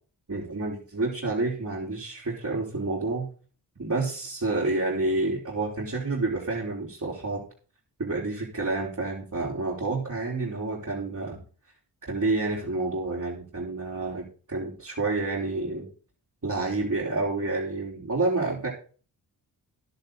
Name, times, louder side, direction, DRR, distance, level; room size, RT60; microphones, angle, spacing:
voice 1, 0.3-3.3 3.8-7.4 8.0-11.4 12.1-15.9 16.4-18.7, right 3 dB, 45° right, -4 dB, 4.4 m, -29 dB
11.0 x 10.5 x 4.0 m, 0.38 s
cardioid pair, 40°, 42 cm